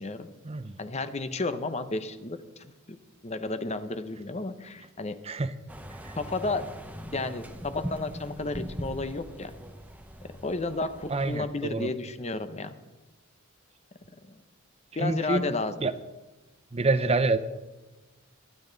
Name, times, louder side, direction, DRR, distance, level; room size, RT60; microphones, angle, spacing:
voice 1, 0.8-2.4 2.9-3.0 3.2-5.1 6.2-6.7 7.1-9.5 10.2-12.7 14.3-14.4 14.9-15.9, left 3 dB, 30° left, 11 dB, 0.8 m, -32 dB
sound 1, 5.7-11.4, equal, 5° right, 0.9 m, -41 dB
voice 2, 11.1-11.9 15.0-15.4 15.8-15.9 16.7-17.4, right 3 dB, 30° right, 12 dB, 0.6 m, -26 dB
22.5 x 9.5 x 4.0 m, 1.1 s
head